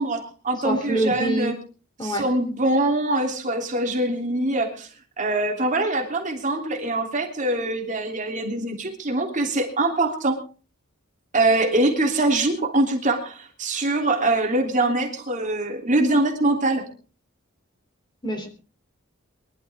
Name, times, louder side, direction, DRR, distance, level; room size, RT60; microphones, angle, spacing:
voice 1, 0.0-1.6 2.0-4.9 5.2-10.4 11.3-16.9, right 2 dB, 35° right, 2 dB, 3.2 m, -23 dB
voice 2, 0.6-1.5 2.0-2.2 18.2-18.5, right 2 dB, 20° left, 6 dB, 3.3 m, -25 dB
23.5 x 12.5 x 3.6 m, 0.35 s
head